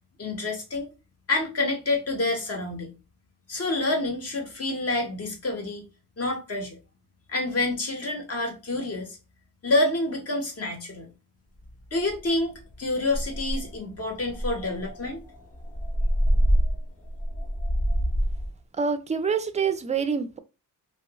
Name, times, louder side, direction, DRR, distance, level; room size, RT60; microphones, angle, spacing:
voice 1, 0.2-0.9 1.3-3.0 3.5-5.9 6.2-6.8 7.3-9.2 9.6-11.1 11.9-15.2, left 2 dB, 45° left, 1.1 m, -28 dB
sound 1, 11.6-11.7 12.1-12.4 12.7-12.8 13.1-13.8 14.3-18.5, equal, 25° left, 0.7 m, -25 dB
voice 2, 18.8-20.4, right 6 dB, 20° right, 0.3 m, -26 dB
2.7 x 2.5 x 2.9 m
wide cardioid pair, 120°, 34 cm